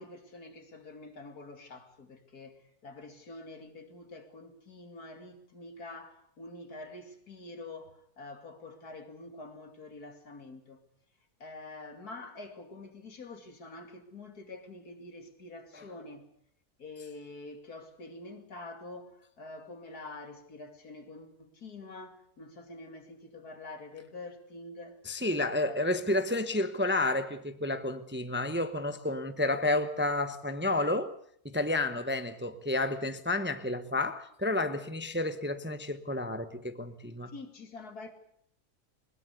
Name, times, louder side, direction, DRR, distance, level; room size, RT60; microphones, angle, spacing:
voice 1, 0.0-10.8 11.4-16.3 16.8-25.0 25.4-25.8 37.3-38.1, left 2 dB, 70° left, 3.2 m, -46 dB
voice 2, 25.1-31.1 31.4-37.3, left 2 dB, 10° right, 0.9 m, -30 dB
21.0 x 20.5 x 8.2 m
omnidirectional pair, 1.7 m